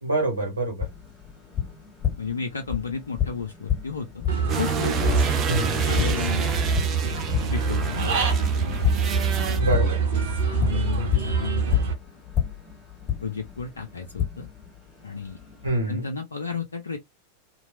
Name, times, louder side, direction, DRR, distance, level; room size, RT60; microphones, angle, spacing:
voice 1, 0.0-0.9 5.5-5.9 9.6-10.0 15.6-16.1, right 2 dB, 80° right, 1.1 m, -26 dB
Tap, 0.8-15.7, left 10 dB, 25° left, 1.6 m, -32 dB
voice 2, 2.2-4.3 4.6-5.2 5.8-6.5 7.5-8.1 10.0-11.8 13.2-14.5 15.0-15.4 15.9-17.0, left 5 dB, 75° left, 0.4 m, -32 dB
Human voice / Bird, 4.3-11.9, right 4 dB, 55° right, 0.9 m, -25 dB
sound 1, 4.5-9.6, right 5 dB, 30° right, 0.5 m, -30 dB
2.9 x 2.1 x 2.5 m
figure-of-eight pair, 90°, 0 cm